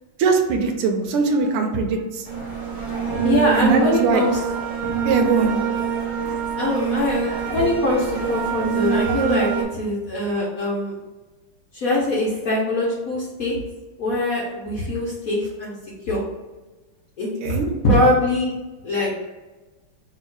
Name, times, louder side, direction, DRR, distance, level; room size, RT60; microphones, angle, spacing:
voice 1, 0.2-2.3 3.5-4.2 5.0-5.5 17.4-17.7, right 4 dB, 90° right, 4 dB, 1.6 m, -21 dB
sound 1, 2.2-9.6, right 7 dB, 40° right, 0.6 m, -25 dB
voice 2, 3.2-4.7 6.6-11.0 11.7-13.6 14.0-15.7 16.1-16.2 17.2-17.6 17.8-18.5 18.8-19.1, left 1 dB, 60° left, -5 dB, 0.9 m, -22 dB
3.5 x 2.8 x 4.5 m, 1.2 s
omnidirectional pair, 2.4 m